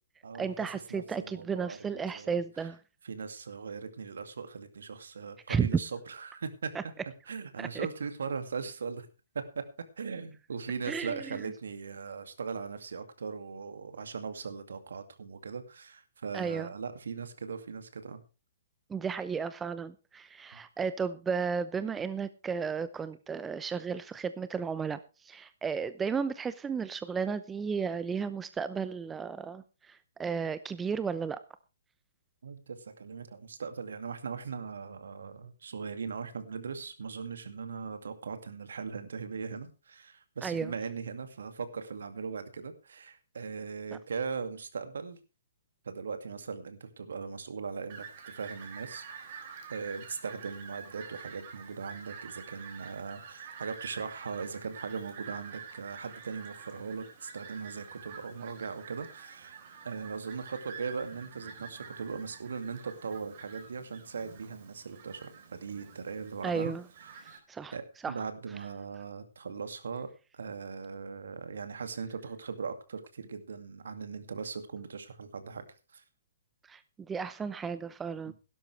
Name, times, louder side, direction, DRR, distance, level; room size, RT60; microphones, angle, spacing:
voice 1, 0.4-2.8 5.5-5.7 6.7-6.8 7.6-7.9 10.9-11.4 16.3-16.7 18.9-31.4 40.4-40.7 66.4-66.8 67.2-67.7 68.0-68.1 76.7-76.8 77.1-78.3, right 6 dB, 10° right, 14 dB, 0.7 m, -34 dB
voice 2, 0.9-2.4 3.0-6.7 7.3-9.1 9.3-9.6 10.0-18.2 20.5-20.6 32.4-45.2 45.8-49.0 49.7-59.6 59.8-66.7 67.0-67.4 67.7-75.7 75.9-76.0 78.3-78.4, right 5 dB, 65° right, 9 dB, 2.3 m, -39 dB
Fowl, 47.9-67.4, right 6 dB, 40° right, 4.1 m, -48 dB
16.5 x 12.5 x 3.3 m, 0.31 s
figure-of-eight pair, 125°, 0 cm